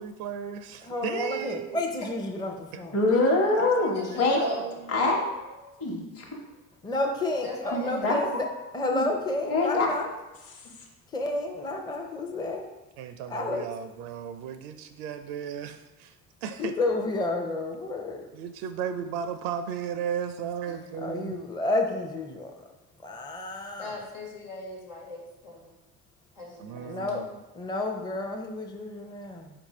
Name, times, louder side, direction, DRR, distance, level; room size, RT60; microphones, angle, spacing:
voice 1, 0.0-1.9 2.7-2.8 3.6-4.9 13.0-16.8 18.3-21.4 26.6-27.4, right 8 dB, 75° right, 9 dB, 0.5 m, -35 dB
voice 2, 0.9-2.9 6.8-8.5 8.7-10.1 11.1-12.7 13.3-13.6 16.6-18.2 21.0-22.5 23.0-23.9 26.9-27.2 27.6-29.5, left 2 dB, 10° left, 2 dB, 0.5 m, -30 dB
voice 3, 2.9-4.4 4.9-6.4 7.7-8.5 8.9-9.1 9.5-10.0, left 2 dB, 35° left, -1 dB, 1.0 m, -25 dB
voice 4, 3.9-4.8 7.4-8.1 10.6-10.7 23.8-25.7 26.3-26.9, left 1 dB, 90° left, -3 dB, 1.4 m, -37 dB
4.4 x 2.6 x 4.2 m, 1.0 s
hypercardioid pair, 75°, 42 cm